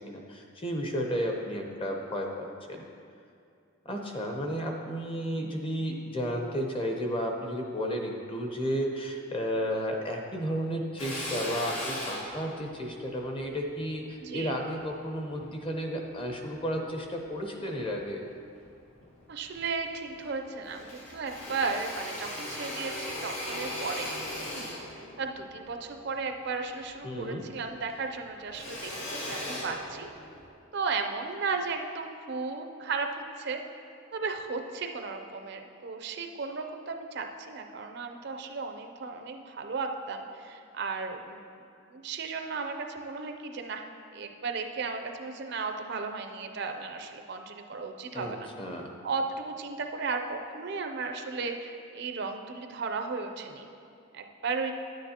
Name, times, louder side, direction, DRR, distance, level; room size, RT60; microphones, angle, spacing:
voice 1, 0.1-2.8 3.8-18.2 27.0-27.4 48.1-48.9, equal, 25° left, 2 dB, 0.7 m, -33 dB
Drill, 11.0-15.5 16.1-17.2 17.7-18.6 19.0-19.1 19.4-20.4 20.6-27.3 27.6-30.5, left 1 dB, 90° left, 2.0 m, -39 dB
voice 2, 14.2-14.6 19.3-24.1 24.6-24.7 25.2-30.1 30.7-33.6 34.1-41.6 41.9-43.8 44.1-48.5 49.0-53.7 54.1-54.7, right 4 dB, 50° right, 5 dB, 0.5 m, -35 dB
9.7 x 9.3 x 2.9 m, 2.5 s
head